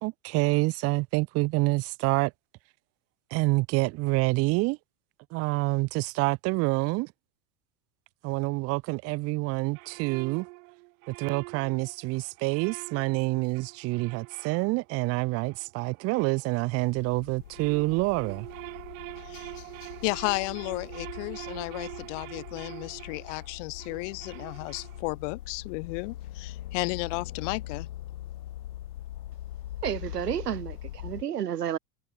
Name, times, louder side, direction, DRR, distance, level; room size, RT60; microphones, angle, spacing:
voice 1, 0.0-2.3 3.3-4.8 5.3-7.1 8.2-10.5 11.1-18.5, right 24 dB, 35° right, 0.5 m, -27 dB
sound 1, 9.7-17.0 17.3-25.3, right 27 dB, 60° right, 3.4 m, -45 dB
sound 2, 16.9-31.2, left 13 dB, 70° left, 3.8 m, -42 dB
voice 2, 20.0-27.9, left 30 dB, 50° left, 0.8 m, -33 dB
voice 3, 29.8-31.8, right 10 dB, 85° right, 1.0 m, -31 dB
hypercardioid pair, 90°, 46 cm